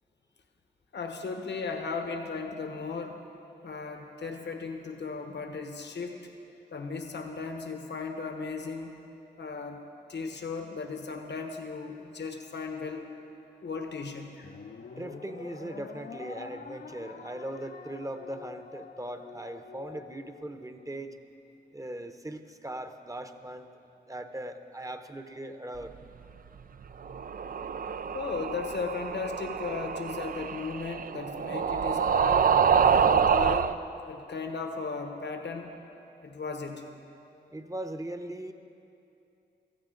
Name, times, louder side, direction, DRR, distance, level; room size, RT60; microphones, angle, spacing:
voice 1, 0.9-3.2 3.6-6.2 6.7-9.0 9.4-9.8 10.1-13.1 13.6-14.6 28.1-32.5 32.9-33.7 34.1-35.7 36.2-36.9, left 4 dB, 75° left, 5 dB, 1.2 m, -36 dB
sound 1, 14.4-21.0, left 6 dB, 55° left, 0.6 m, -46 dB
voice 2, 15.0-21.1 21.7-23.7 24.1-25.9 37.5-38.5, right 1 dB, 20° right, 7 dB, 0.9 m, -39 dB
sound 2, 27.0-33.7, right 7 dB, 50° right, 0.4 m, -26 dB
16.5 x 14.0 x 3.9 m, 2.7 s
cardioid pair, 45°, 18 cm